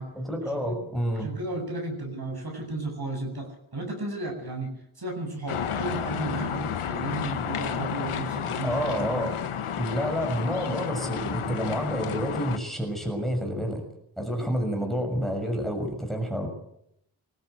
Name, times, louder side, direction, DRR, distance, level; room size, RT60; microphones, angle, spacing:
voice 1, 0.1-1.3 8.6-9.4 9.8-13.8 14.2-16.5, equal, ahead, 3 dB, 6.4 m, -29 dB
voice 2, 1.1-9.3, right 2 dB, 50° right, 3 dB, 7.9 m, -34 dB
sound 1, 5.5-12.6, left 8 dB, 90° left, 1.3 m, -31 dB
20.5 x 16.0 x 8.0 m, 0.78 s
cardioid pair, 45°, 49 cm